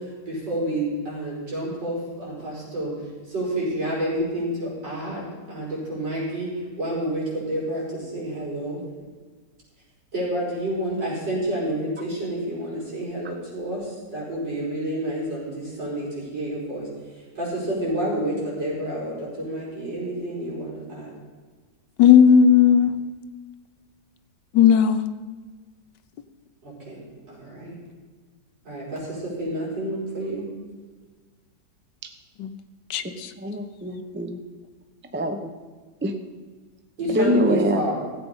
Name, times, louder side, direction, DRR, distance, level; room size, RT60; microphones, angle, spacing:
voice 1, 0.5-2.9 3.3-4.5 4.8-5.2 5.5-6.5 6.8-7.2 7.5-7.8 8.1-8.8 10.1-13.8 14.1-15.5 15.8-16.1 16.3-16.8 17.4-18.3 18.6-19.1 19.4-21.0 26.9-27.0 27.6-27.7 28.7-28.8 29.4-30.4 37.0-37.9, right 1 dB, 85° right, -6 dB, 6.0 m, -28 dB
voice 2, 22.0-23.0 24.5-25.0 32.4-32.5 32.9-33.3, left 8 dB, 80° left, 11 dB, 1.4 m, -15 dB
voice 3, 33.0-34.4 35.1-35.5 36.0-36.1 37.1-37.9, equal, 15° right, 7 dB, 0.4 m, -25 dB
15.0 x 8.6 x 5.5 m, 1.4 s
omnidirectional pair, 1.9 m